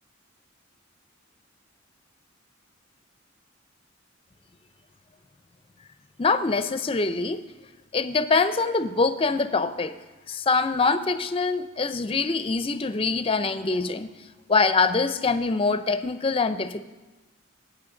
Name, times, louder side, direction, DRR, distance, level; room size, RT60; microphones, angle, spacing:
voice 1, 6.2-7.4 7.9-9.9 10.3-14.1 14.5-16.8, left 4 dB, 25° left, 11 dB, 0.5 m, -24 dB
19.0 x 8.4 x 3.9 m, 1.2 s
head